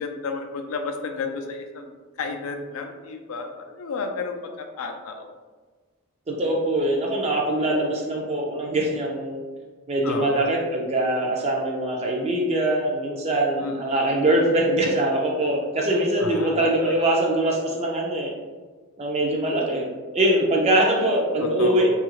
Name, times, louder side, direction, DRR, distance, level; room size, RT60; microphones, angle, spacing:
voice 1, 0.0-1.9 2.2-5.3 10.0-10.5 13.6-13.9 16.2-16.9 21.4-22.0, left 4 dB, 65° left, 5 dB, 0.4 m, -32 dB
voice 2, 6.3-9.4 9.9-18.3 19.0-19.9 20.1-22.0, right 1 dB, 30° right, -1 dB, 0.4 m, -23 dB
2.7 x 2.4 x 3.0 m, 1.4 s
head